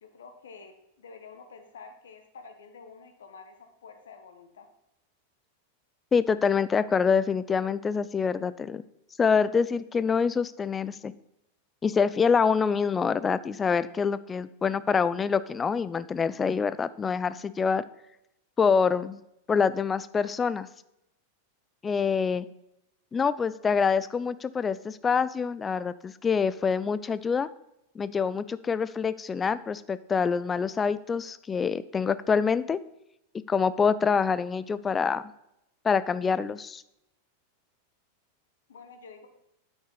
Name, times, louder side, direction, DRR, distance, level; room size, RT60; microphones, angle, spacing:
voice 1, 0.0-4.7 38.7-39.3, left 5 dB, 65° left, 6 dB, 1.0 m, -49 dB
voice 2, 6.1-8.8 9.2-11.1 11.8-17.8 18.6-19.2 19.5-20.7 21.8-22.5 23.1-27.5 28.0-32.8 33.5-35.2 35.8-36.8, left 6 dB, 20° left, 16 dB, 0.3 m, -26 dB
8.6 x 6.3 x 3.9 m, 0.84 s
figure-of-eight pair, 90°, 0 cm